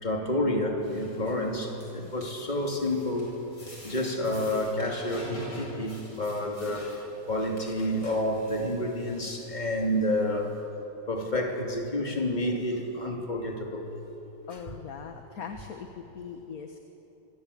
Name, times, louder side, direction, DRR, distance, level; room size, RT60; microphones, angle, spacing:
voice 1, 0.0-10.5 11.1-13.9, left 1 dB, 25° left, 2 dB, 3.0 m, -29 dB
sound 1, 0.8-10.6, left 1 dB, 75° left, 8.7 m, -47 dB
voice 2, 14.5-16.8, left 6 dB, 55° left, 5 dB, 1.8 m, -40 dB
26.0 x 24.5 x 8.5 m, 2.9 s
omnidirectional pair, 1.9 m